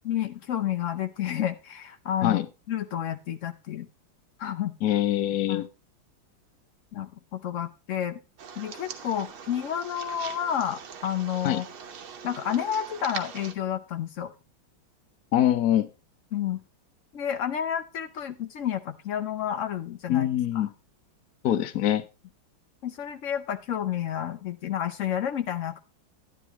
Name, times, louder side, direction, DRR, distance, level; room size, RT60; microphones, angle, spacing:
voice 1, 0.0-3.9 4.4-4.7 5.5-5.7 6.9-8.2 8.6-11.7 12.2-14.3 16.3-16.6 17.1-20.3 20.5-20.7 22.8-25.8, left 10 dB, 90° left, 8 dB, 0.6 m, -30 dB
voice 2, 4.8-5.7 11.4-11.6 15.3-15.9 20.1-20.7 21.4-22.0, left 12 dB, 65° left, 8 dB, 0.9 m, -24 dB
sound 1, 8.4-13.5, right 7 dB, 80° right, 2.0 m, -42 dB
11.0 x 11.0 x 2.9 m, 0.29 s
omnidirectional pair, 2.2 m